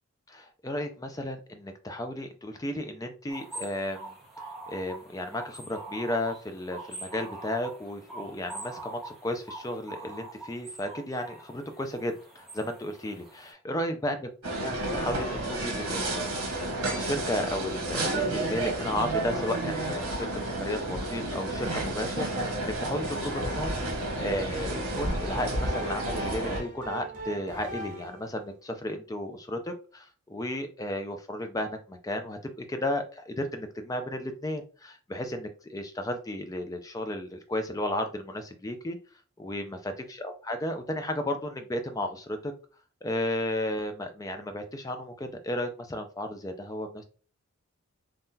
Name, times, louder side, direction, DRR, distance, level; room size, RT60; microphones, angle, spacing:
voice 1, 0.3-4.2 4.7-14.3 14.6-39.0 39.4-42.5 43.0-47.0, left 1 dB, 15° left, 6 dB, 0.3 m, -34 dB
sound 1, 3.3-13.5, right 2 dB, ahead, 0.8 m, -44 dB
sound 2, 14.4-26.6, right 2 dB, 90° right, 1.0 m, -31 dB
sound 3, 25.0-28.3, equal, 35° right, 0.7 m, -40 dB
3.6 x 2.3 x 2.7 m, 0.37 s
head